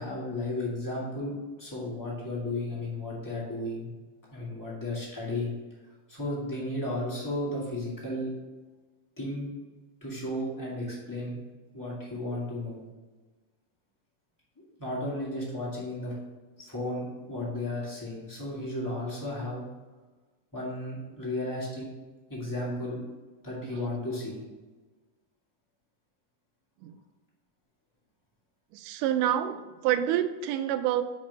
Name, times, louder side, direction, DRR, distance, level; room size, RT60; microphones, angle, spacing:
voice 1, 0.0-3.9 4.3-5.5 6.1-8.3 9.2-9.5 10.0-11.4 11.7-12.8 14.8-16.1 16.6-19.6 20.5-21.9 22.3-23.0 23.4-24.4, left 1 dB, 15° left, -6 dB, 0.7 m, -34 dB
voice 2, 28.7-31.0, right 11 dB, 90° right, 10 dB, 2.1 m, -27 dB
5.2 x 5.2 x 5.2 m, 1.3 s
omnidirectional pair, 3.6 m